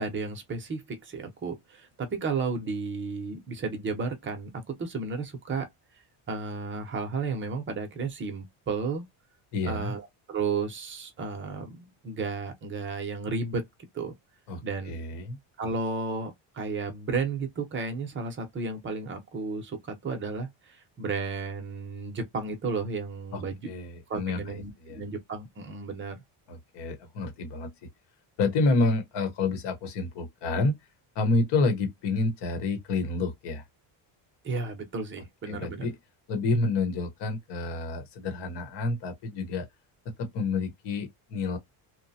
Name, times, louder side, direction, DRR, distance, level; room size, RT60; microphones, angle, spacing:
voice 1, 0.0-5.7 6.3-9.0 9.6-13.6 13.9-14.1 14.6-15.0 15.6-23.6 24.1-26.2 34.4-35.9, right 4 dB, 25° right, 0.7 m, -33 dB
voice 2, 9.5-9.9 14.5-15.4 23.3-25.0 26.5-27.7 28.4-30.7 31.1-33.6 35.5-35.9 36.3-39.6 40.2-41.6, left 3 dB, 55° left, 1.1 m, -29 dB
2.9 x 2.1 x 2.7 m
cardioid pair, 140°, 48 cm